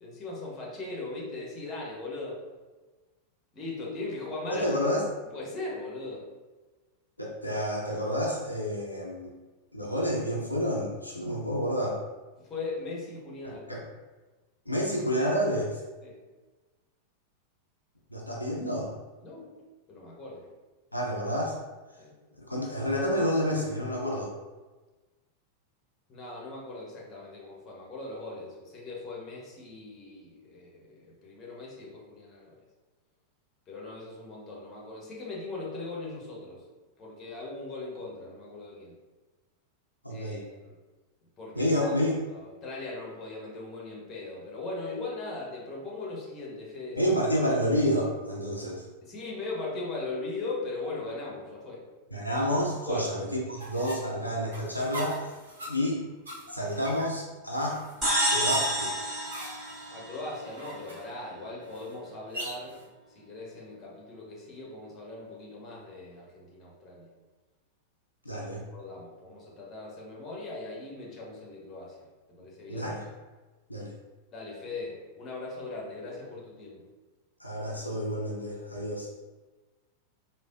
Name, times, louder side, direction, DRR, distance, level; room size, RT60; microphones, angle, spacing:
voice 1, 0.0-2.4 3.5-4.7 5.3-6.3 12.4-13.7 16.0-16.2 19.2-19.5 19.9-20.5 22.0-22.1 26.1-32.6 33.7-36.6 37.0-39.0 40.1-40.8 41.4-41.9 42.3-47.1 49.0-51.8 52.8-53.1 53.5-53.6 59.9-62.8 63.1-67.1 68.3-68.5 68.7-72.9 74.3-76.9 79.0-79.1, left 3 dB, 30° left, -3 dB, 0.8 m, -39 dB
voice 2, 4.5-5.0 7.2-9.3 9.7-12.0 13.4-13.8 14.7-15.8 18.1-18.9 20.9-21.5 22.4-24.3 40.0-40.4 41.6-42.2 47.0-48.8 52.1-55.2 55.7-56.0 56.5-57.8 58.3-59.0 68.3-68.6 72.7-73.0 73.7-73.9 77.4-79.1, equal, 85° left, -3 dB, 0.4 m, -29 dB
sound 1, 53.6-62.8, right 1 dB, 70° right, 0.7 m, -42 dB
sound 2, 58.0-60.6, equal, 15° right, 1.2 m, -29 dB
3.3 x 2.1 x 2.4 m, 1.2 s
figure-of-eight pair, 90°, 0 cm